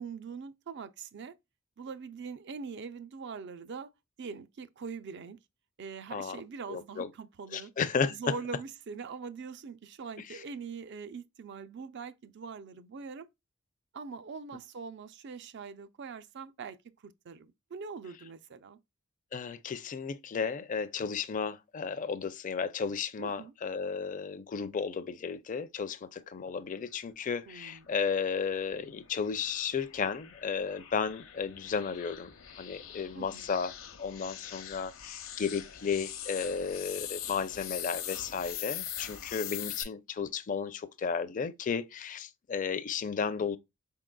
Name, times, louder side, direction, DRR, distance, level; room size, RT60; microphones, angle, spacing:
voice 1, 0.0-1.3 1.8-3.9 4.2-5.4 5.8-7.7 8.1-13.3 13.9-16.8 17.0-18.8 23.2-23.5 27.5-27.9 33.1-33.5, right 5 dB, 60° right, 0.4 m, -42 dB
voice 2, 6.7-7.1 7.5-8.2 10.3-10.4 19.3-33.7 34.0-43.6, left 6 dB, 40° left, 0.4 m, -34 dB
sound 1, 28.4-39.8, left 10 dB, 75° left, 0.7 m, -42 dB
4.4 x 3.7 x 2.2 m
head